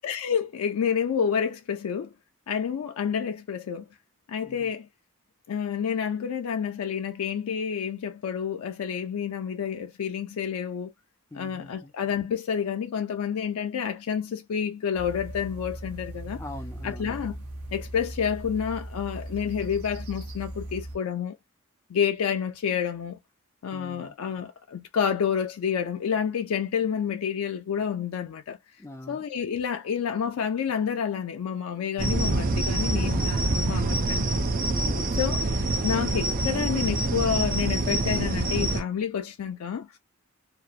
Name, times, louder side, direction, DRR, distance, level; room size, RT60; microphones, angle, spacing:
voice 1, 0.0-2.1 2.5-3.9 4.3-4.9 5.5-10.9 11.3-16.4 16.8-17.4 17.7-21.4 21.9-23.2 23.6-28.6 29.1-34.5 35.1-35.4 35.8-39.9, left 7 dB, 85° left, 0.4 m, -29 dB
voice 2, 11.3-11.9 16.4-17.1 23.7-24.2 28.8-29.2 34.8-35.3, left 1 dB, 10° left, 0.3 m, -42 dB
sound 1, 14.9-21.0, right 1 dB, 80° right, 0.8 m, -38 dB
sound 2, 32.0-38.8, right 2 dB, 40° right, 0.5 m, -26 dB
2.8 x 2.0 x 2.2 m
head